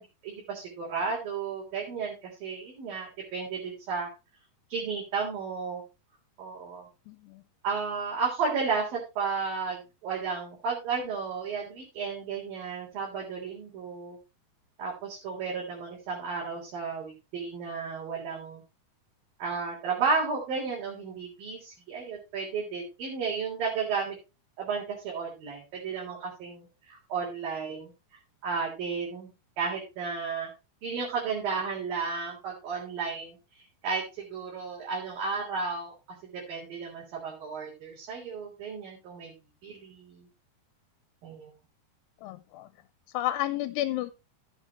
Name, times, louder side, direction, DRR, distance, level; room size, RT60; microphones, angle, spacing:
voice 1, 0.0-4.1 4.7-5.8 6.4-6.9 7.6-14.2 14.8-18.6 19.4-24.2 24.6-27.9 28.4-29.3 29.6-30.5 30.8-33.4 33.8-35.9 36.2-39.3 39.6-40.3 41.2-41.5, right 5 dB, 60° right, -4 dB, 5.3 m, -33 dB
voice 2, 7.1-7.4 42.2-42.7 43.1-44.1, left 14 dB, 85° left, 13 dB, 2.7 m, -31 dB
15.5 x 8.0 x 3.1 m, 0.28 s
omnidirectional pair, 4.8 m